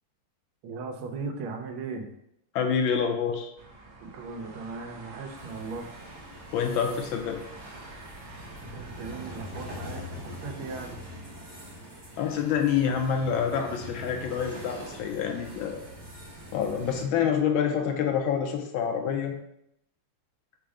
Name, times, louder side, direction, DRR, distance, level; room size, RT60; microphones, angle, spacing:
voice 1, 0.6-2.1 4.0-5.9 8.7-11.0, right 4 dB, 85° right, 3 dB, 1.5 m, -37 dB
voice 2, 2.5-3.5 6.5-7.4 12.2-15.8 16.5-19.3, left 7 dB, 75° left, 4 dB, 1.3 m, -27 dB
sound 1, 3.6-10.3, right 2 dB, 65° right, 1.2 m, -49 dB
sound 2, 5.3-17.0, equal, 25° right, 0.5 m, -43 dB
5.5 x 2.0 x 4.8 m, 0.78 s
omnidirectional pair, 2.3 m